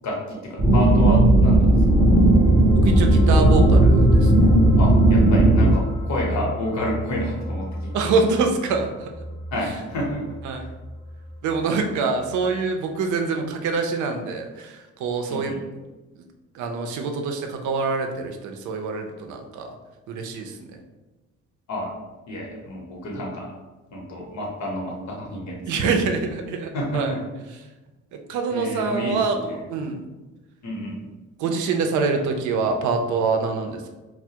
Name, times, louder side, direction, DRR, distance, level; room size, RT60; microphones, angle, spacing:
voice 1, 0.0-1.8 4.8-7.9 9.5-10.2 10.6-10.7 15.3-15.6 21.7-21.9 22.3-23.5 23.9-25.6 26.7-27.2 28.5-29.6 30.6-31.1, left 1 dB, 70° left, -2 dB, 0.8 m, -29 dB
sound 1, 0.6-5.7, right 1 dB, 25° right, 0.7 m, -15 dB
sound 2, 1.3-12.0 12.3-12.4, equal, 30° left, 0.4 m, -28 dB
voice 2, 2.7-4.3 7.9-9.1 10.4-10.7 11.4-15.6 16.2-16.3 16.5-19.7 20.1-20.7 25.6-27.1 28.1-30.0 31.4-33.9, right 4 dB, 75° right, 4 dB, 0.5 m, -25 dB
2.2 x 2.0 x 2.7 m, 1.1 s
cardioid pair, 90°, 30 cm